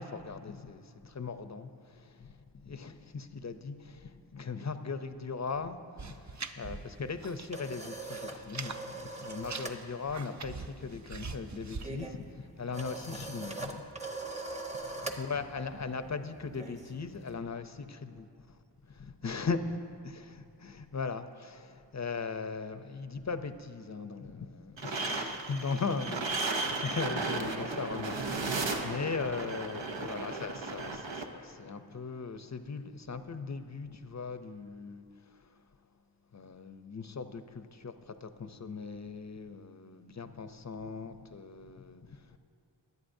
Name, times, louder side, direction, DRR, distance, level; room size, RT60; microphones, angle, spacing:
voice 1, 0.0-14.1 14.6-35.8 36.3-42.4, left 4 dB, 40° left, 0.6 m, -39 dB
sound 1, 6.0-7.6 7.8-8.8 9.2-11.9, right 4 dB, 40° right, 0.5 m, -42 dB
sound 2, 7.1-9.8 10.1-10.4 10.7-17.3, right 2 dB, 15° right, 0.9 m, -42 dB
sound 3, 24.8-31.2, right 3 dB, 85° right, 0.8 m, -35 dB
21.0 x 8.2 x 2.7 m
wide cardioid pair, 40°, 44 cm